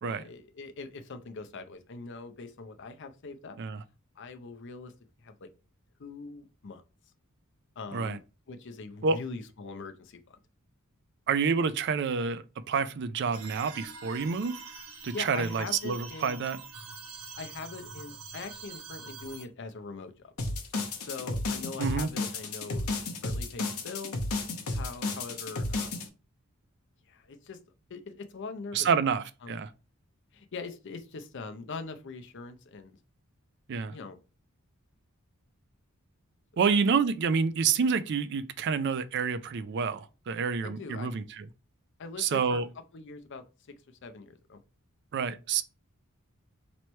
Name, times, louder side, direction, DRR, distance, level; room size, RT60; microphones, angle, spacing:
voice 1, 0.0-3.6 4.2-4.9 5.2-5.5 6.0-6.8 7.8-8.2 8.5-10.4 15.1-16.3 17.3-20.3 21.0-22.9 23.2-24.2 24.7-26.1 27.1-27.6 27.9-28.9 29.4-29.6 30.3-33.0 33.9-34.2 36.5-36.7 40.6-41.1 42.0-42.6 42.9-43.7 44.0-44.6, left 4 dB, 55° left, 0.5 m, -42 dB
voice 2, 11.3-14.6 15.0-16.6 21.8-22.1 28.7-29.7 33.7-33.9 36.6-41.4 42.2-42.7 45.1-45.6, right 5 dB, 55° right, 0.4 m, -28 dB
sound 1, 13.3-19.5, right 5 dB, 85° right, 0.9 m, -45 dB
sound 2, 20.4-26.0, left 2 dB, 85° left, 0.8 m, -32 dB
3.1 x 3.0 x 4.3 m
head